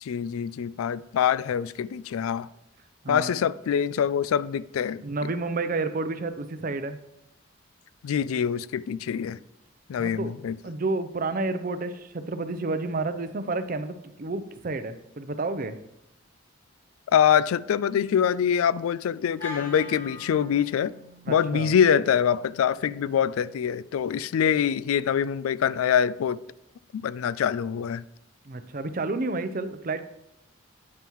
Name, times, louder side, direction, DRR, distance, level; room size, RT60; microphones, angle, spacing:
voice 1, 0.0-2.5 3.1-5.0 8.0-9.4 9.9-10.6 17.1-20.9 21.3-26.4 26.9-28.0, left 8 dB, 85° left, 0.3 m, -24 dB
voice 2, 5.0-7.0 10.0-10.4 10.6-15.8 21.3-21.7 28.4-30.0, right 3 dB, 40° right, 0.5 m, -30 dB
Wind instrument woodwind instrument, 19.4-23.6, left 2 dB, 10° left, 2.9 m, -44 dB
9.0 x 8.7 x 3.1 m
head